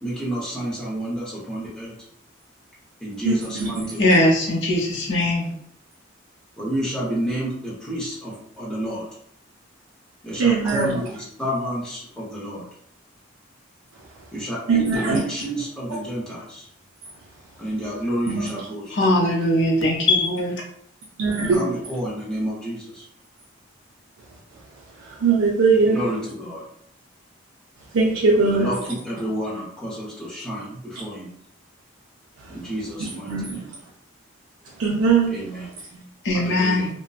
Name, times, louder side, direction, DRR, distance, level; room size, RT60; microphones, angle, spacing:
voice 1, 0.0-1.9 3.0-4.2 6.6-9.1 10.2-12.6 14.3-16.7 17.6-19.0 21.4-23.1 25.8-26.6 28.3-31.3 32.5-33.7 35.3-35.7 36.3-36.9, equal, 5° left, -7 dB, 0.7 m, -29 dB
voice 2, 3.2-3.9 10.4-11.0 14.7-15.2 18.3-18.5 21.2-21.6 25.0-26.0 27.9-28.7 32.4-32.5 33.0-33.7 34.8-35.4, right 4 dB, 80° right, -4 dB, 0.5 m, -20 dB
voice 3, 4.0-5.5 18.9-20.5 36.2-36.9, left 1 dB, 60° left, -1 dB, 0.6 m, -20 dB
2.5 x 2.1 x 2.3 m, 0.69 s
head